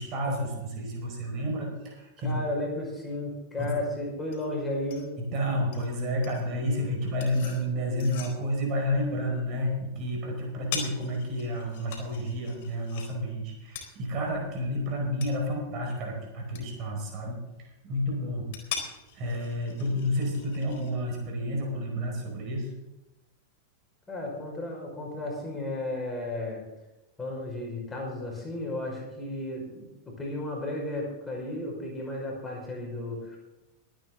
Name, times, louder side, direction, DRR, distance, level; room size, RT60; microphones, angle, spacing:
voice 1, 0.0-2.4 3.6-3.7 5.2-18.7 19.1-22.7, equal, 35° right, 1 dB, 5.3 m, -30 dB
voice 2, 2.2-5.1 24.1-26.6 27.2-33.4, left 1 dB, 10° left, -1 dB, 5.3 m, -34 dB
sound 1, 3.6-20.9, left 7 dB, 50° left, 4.1 m, -44 dB
23.5 x 9.2 x 3.9 m, 0.99 s
figure-of-eight pair, 90°, 0 cm